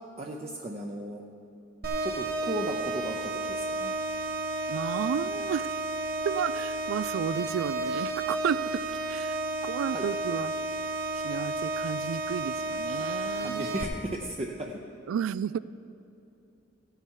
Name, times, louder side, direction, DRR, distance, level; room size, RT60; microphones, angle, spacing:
voice 1, 0.2-1.2 2.0-3.2 3.5-3.9 9.9-10.1 12.9-13.1 13.4-14.8, right 1 dB, 30° right, 1 dB, 0.6 m, -35 dB
sound 1, 1.8-13.8, right 2 dB, 50° right, 1.0 m, -32 dB
voice 2, 4.7-5.7 6.2-8.8 9.1-9.3 9.6-10.5 11.2-13.6 15.1-15.6, right 7 dB, 90° right, 17 dB, 0.3 m, -32 dB
16.0 x 8.9 x 4.6 m, 2.8 s
head